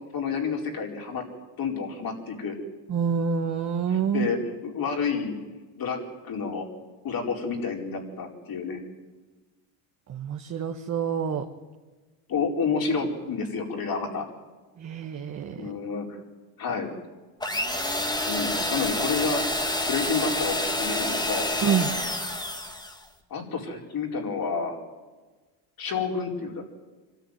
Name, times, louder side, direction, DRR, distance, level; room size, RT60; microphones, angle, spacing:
voice 1, 0.1-1.2 1.6-2.5 3.9-4.4 4.6-5.3 5.8-6.0 6.2-6.7 7.0-8.8 12.3-14.3 15.6-16.2 16.6-16.9 18.0-19.4 19.9-21.5 23.3-24.8 25.8-26.6, left 5 dB, 50° left, 2 dB, 4.8 m, -29 dB
voice 2, 2.9-4.3 10.1-11.5 14.8-15.7 21.6-21.9, right 7 dB, 35° right, 4 dB, 1.5 m, -27 dB
sound 1, 17.4-23.0, left 1 dB, 10° left, 2.0 m, -28 dB
25.0 x 13.5 x 9.3 m, 1.3 s
cardioid pair, 115°, 47 cm